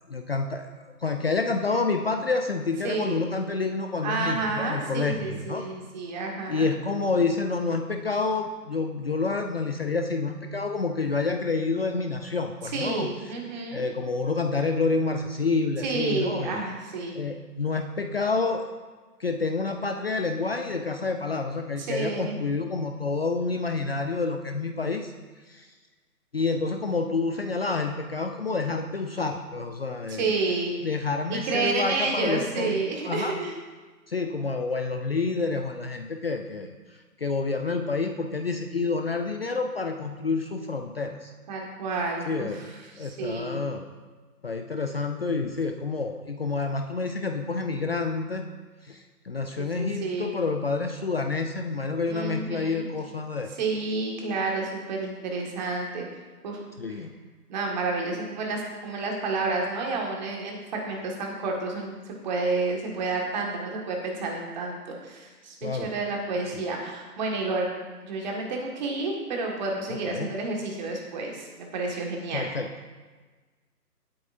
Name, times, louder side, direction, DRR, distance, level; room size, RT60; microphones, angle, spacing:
voice 1, 0.1-5.6 6.5-13.1 13.7-16.6 17.2-18.6 19.2-25.1 25.5-25.7 26.3-30.3 30.8-33.3 34.1-36.8 37.2-41.3 42.3-42.6 43.0-43.8 44.4-48.4 48.8-53.5 56.8-57.1 65.6-65.9 66.5-66.7 69.9-70.3 72.3-72.7, left 4 dB, 40° left, 5 dB, 0.5 m, -28 dB
voice 2, 2.8-3.3 4.0-6.7 12.7-13.8 15.8-17.1 21.8-22.4 30.1-30.7 31.3-33.5 41.5-42.7 43.0-43.6 49.6-50.3 52.1-52.8 53.6-56.1 56.4-56.6 56.9-57.1 57.5-67.7 68.0-72.4, right 3 dB, 25° right, 0 dB, 1.8 m, -30 dB
16.0 x 8.7 x 2.6 m, 1.3 s
figure-of-eight pair, 150°, 48 cm